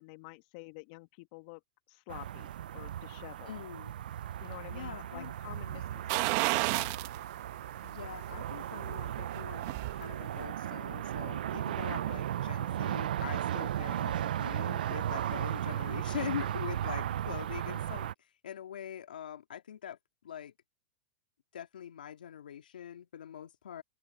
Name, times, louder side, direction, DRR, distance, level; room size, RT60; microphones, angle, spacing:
voice 1, 0.0-1.6 1.9-3.5 4.4-7.0 14.0-14.3, left 25 dB, 60° left, 1.8 m, -49 dB
sound 1, 2.1-18.1, right 11 dB, 80° right, 0.5 m, -36 dB
voice 2, 3.5-3.9 4.7-5.3 5.8-5.9 7.8-9.6 9.9-20.0 20.2-20.5 21.5-23.8, left 9 dB, 85° left, 2.2 m, -43 dB
sound 2, 6.1-7.2 7.6-7.7 9.2-10.0 10.3-10.4, right 26 dB, 55° right, 1.7 m, -30 dB
open air
hypercardioid pair, 105°, 5 cm